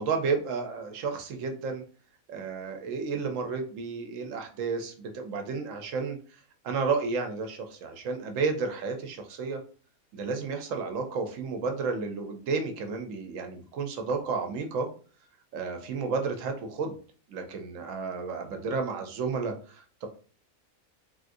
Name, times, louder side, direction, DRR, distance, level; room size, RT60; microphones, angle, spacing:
voice 1, 0.0-1.8 2.3-6.2 6.6-9.6 10.1-14.9 15.5-17.0 17.3-20.1, right 4 dB, 70° right, 5 dB, 0.9 m, -32 dB
3.4 x 2.4 x 2.6 m, 0.41 s
omnidirectional pair, 1.5 m